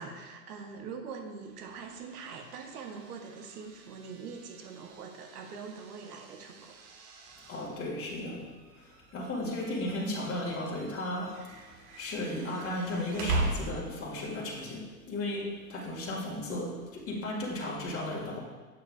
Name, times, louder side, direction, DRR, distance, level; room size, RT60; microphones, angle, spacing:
voice 1, 0.0-6.8, right 5 dB, 75° right, 4 dB, 1.0 m, -43 dB
sound 1, 1.4-14.2, right 2 dB, 50° right, 1.1 m, -41 dB
voice 2, 7.5-18.4, left 1 dB, 30° left, -3 dB, 1.7 m, -35 dB
7.7 x 6.7 x 2.3 m, 1.3 s
hypercardioid pair, 100°, 46 cm